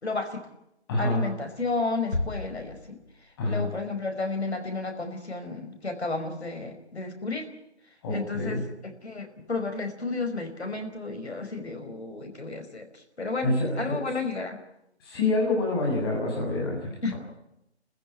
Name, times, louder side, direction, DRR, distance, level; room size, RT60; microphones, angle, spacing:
voice 1, 0.0-0.5 1.0-3.0 3.5-7.5 8.1-14.6 17.0-17.2, left 3 dB, 75° left, 6 dB, 5.1 m, -32 dB
voice 2, 0.9-1.2 3.4-3.7 8.0-8.6 13.4-14.0 15.0-17.2, left 2 dB, 20° left, -1 dB, 6.8 m, -27 dB
sound 1, 2.1-3.5, left 2 dB, 90° left, 2.7 m, -34 dB
27.5 x 15.0 x 8.8 m, 0.83 s
figure-of-eight pair, 160°, 34 cm